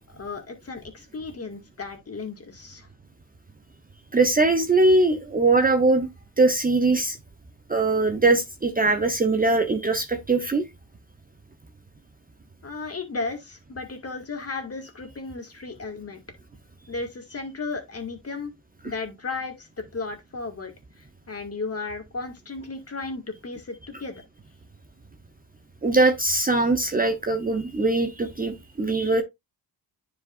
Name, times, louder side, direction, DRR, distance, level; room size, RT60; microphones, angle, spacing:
voice 1, 0.1-2.9 12.6-16.2 16.9-18.5 18.8-20.7 21.0-24.2, left 3 dB, 35° left, 2.1 m, -34 dB
voice 2, 4.1-6.1 6.4-7.2 7.7-10.6 25.8-29.2, right 2 dB, 20° right, 0.8 m, -21 dB
9.7 x 5.0 x 2.5 m
cardioid pair, 95°, 44 cm